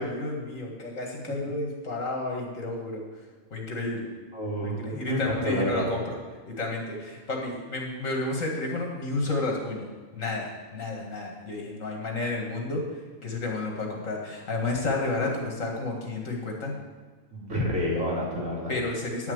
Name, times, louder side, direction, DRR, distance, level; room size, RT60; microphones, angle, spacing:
voice 1, 0.0-3.0 3.5-4.1 4.6-6.2 6.5-12.8 13.2-16.8 18.7-19.3, left 2 dB, 75° left, 0 dB, 2.3 m, -31 dB
voice 2, 4.3-5.9 17.3-18.8, equal, 80° right, -6 dB, 3.6 m, -29 dB
9.8 x 6.0 x 7.9 m, 1.4 s
omnidirectional pair, 1.4 m